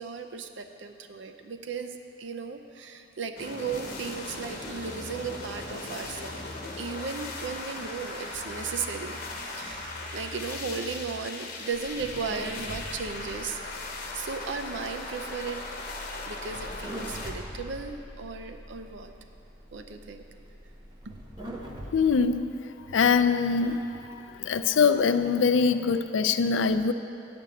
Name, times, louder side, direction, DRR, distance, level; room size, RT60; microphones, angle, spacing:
voice 1, 0.0-6.4 6.8-9.2 9.6-9.8 10.1-13.6 14.1-15.6 16.3-19.1 19.7-20.2, right 5 dB, 70° right, 7 dB, 0.5 m, -36 dB
sound 1, 3.4-17.3, left 3 dB, 45° left, 1.1 m, -39 dB
sound 2, 3.7-11.1, left 1 dB, 5° left, 2.1 m, -45 dB
sound 3, 11.7-22.4, equal, 25° right, 0.9 m, -43 dB
voice 2, 21.9-22.4 22.9-23.8 24.4-26.9, left 5 dB, 80° left, 11 dB, 0.4 m, -23 dB
9.4 x 5.2 x 7.6 m, 2.7 s
head